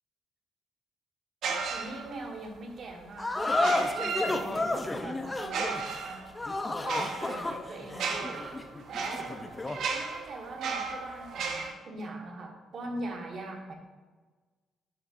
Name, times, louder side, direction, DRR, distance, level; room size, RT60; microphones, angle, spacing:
sound 1, 1.4-2.4 3.5-4.8 5.4-11.7, right 5 dB, 70° right, 0.9 m, -35 dB
voice 1, 1.7-6.2 6.9-8.4 8.9-9.3 9.9-13.7, right 2 dB, 55° right, 1 dB, 1.5 m, -42 dB
sound 2, 3.2-9.9, left 2 dB, 20° left, 0.6 m, -32 dB
10.5 x 5.7 x 2.6 m, 1.3 s
cardioid pair, 90°, 0 cm